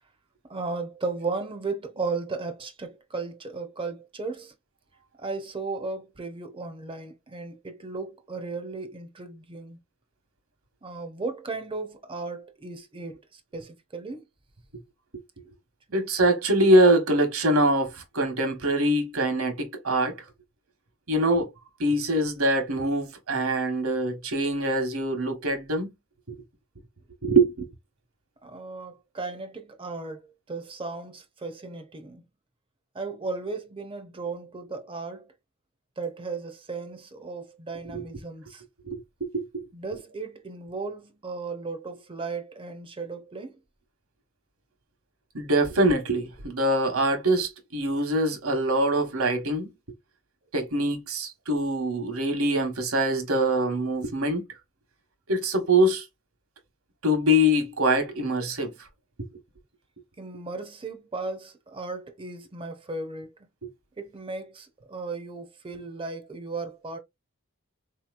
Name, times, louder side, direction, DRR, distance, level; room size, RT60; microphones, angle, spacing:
voice 1, 0.5-4.5 5.2-9.8 10.8-14.2 28.4-30.2 30.5-32.2 32.9-35.2 36.0-38.6 39.7-43.6 60.2-63.3 64.0-67.0, right 3 dB, 25° right, 0.5 m, -35 dB
voice 2, 15.9-20.2 21.1-21.5 21.8-25.9 26.3-26.4 27.2-27.7 37.9-38.0 38.9-39.6 45.3-49.7 50.5-54.4 55.3-56.0 57.0-58.7 63.6-63.7, right 1 dB, 65° right, 1.1 m, -24 dB
3.9 x 2.8 x 2.4 m
head